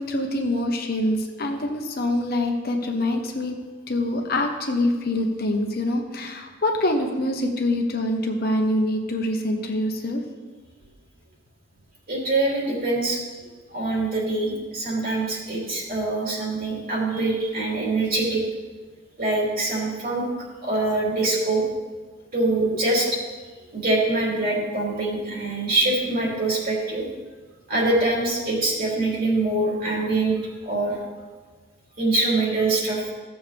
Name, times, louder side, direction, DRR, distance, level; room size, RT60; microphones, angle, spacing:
voice 1, 0.0-3.5 3.9-10.2 22.6-22.7, left 1 dB, 45° left, 2 dB, 1.0 m, -25 dB
voice 2, 12.1-13.2 13.7-18.4 19.2-20.2 20.6-21.6 22.3-23.2 23.7-27.1 27.7-30.3 30.6-31.0 32.0-33.1, right 2 dB, 45° right, -4 dB, 3.1 m, -24 dB
15.5 x 7.1 x 3.4 m, 1.4 s
head